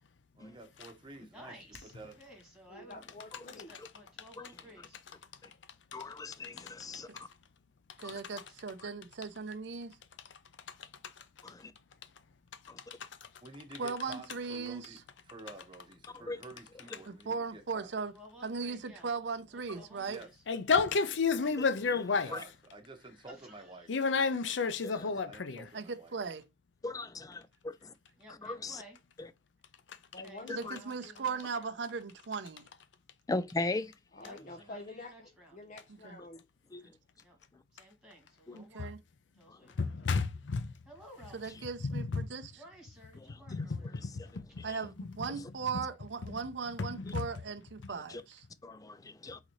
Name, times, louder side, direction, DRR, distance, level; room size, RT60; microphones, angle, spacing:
voice 1, 0.4-2.2 13.4-17.9 20.1-20.3 22.2-23.9 25.0-26.2 34.4-34.6, right 2 dB, 25° right, 1.1 m, -50 dB
voice 2, 1.3-2.9 3.7-5.0 8.5-8.6 18.1-19.1 19.5-20.4 21.4-21.5 23.3-23.9 28.2-29.0 30.2-31.7 34.2-35.6 37.2-37.4 37.7-39.0 39.4-40.1 40.9-41.6 42.5-44.0, equal, 5° right, 2.3 m, -55 dB
voice 3, 2.7-3.8 30.1-30.7 34.1-36.4, left 2 dB, 45° left, 0.8 m, -48 dB
voice 4, 5.9-7.1 8.0-8.2 8.8-8.9 11.4-11.7 12.7-12.8 16.2-16.4 22.3-22.4 26.8-27.9 28.4-28.8 29.2-29.3 30.6-30.8 33.3-33.9 36.7-36.8 38.5-38.6 39.5-39.7 43.3-43.4 44.7-44.8 48.1-48.2 48.6-49.4, left 2 dB, 20° left, 0.4 m, -38 dB
voice 5, 8.0-10.0 13.8-14.9 17.1-18.1 18.4-20.2 25.7-26.4 30.5-32.7 36.0-36.2 38.5-39.0 41.3-42.5 44.6-48.4, right 5 dB, 70° right, 0.6 m, -38 dB
voice 6, 10.7-11.2 12.9-13.3 20.5-22.3 23.9-25.7 29.9-30.0 39.8-40.7 41.8-42.3 43.5-44.7 45.0-45.3 45.7-45.8 46.3-46.4 46.8-47.2, left 4 dB, 85° left, 0.6 m, -32 dB
4.0 x 4.0 x 3.0 m
head